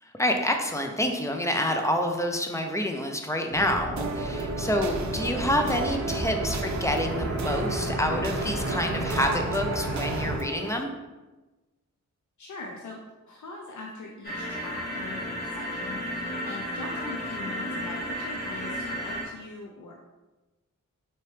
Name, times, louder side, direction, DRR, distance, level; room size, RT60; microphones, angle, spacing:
voice 1, 0.2-10.9, left 1 dB, 10° left, 3 dB, 0.4 m, -28 dB
sound 1, 3.5-10.4, right 1 dB, 40° right, 1.0 m, -31 dB
sound 2, 4.0-10.8, right 5 dB, 60° right, 0.4 m, -36 dB
voice 2, 12.4-13.0 13.3-19.9, left 3 dB, 65° left, -1 dB, 0.6 m, -42 dB
sound 3, 14.2-19.2, equal, 30° left, 1.2 m, -33 dB
4.3 x 2.9 x 3.2 m, 1.1 s
wide cardioid pair, 90°, 31 cm